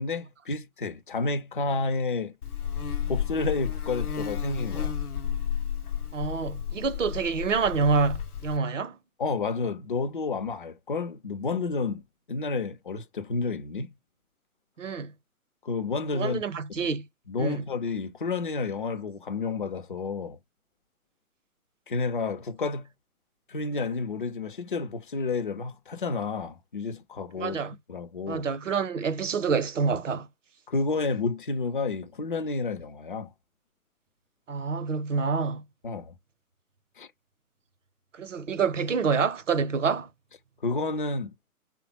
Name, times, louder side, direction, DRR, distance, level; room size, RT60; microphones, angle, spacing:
voice 1, 0.0-2.3 3.1-4.9 9.2-12.0 12.3-13.9 15.6-16.4 16.8-16.9 17.3-20.4 21.9-22.8 23.5-27.6 27.9-28.5 29.9-30.0 30.7-33.3 35.8-36.1 37.0-37.1 40.6-41.3, left 3 dB, 35° left, 0.5 m, -30 dB
Buzz, 2.4-8.6, left 8 dB, 80° left, 0.6 m, -32 dB
voice 2, 6.1-9.0 14.8-15.1 16.1-17.0 17.4-17.6 27.4-27.7 28.3-30.3 34.5-35.6 38.1-40.1, right 5 dB, 55° right, 0.7 m, -27 dB
3.4 x 2.1 x 2.8 m
figure-of-eight pair, 135°, 44 cm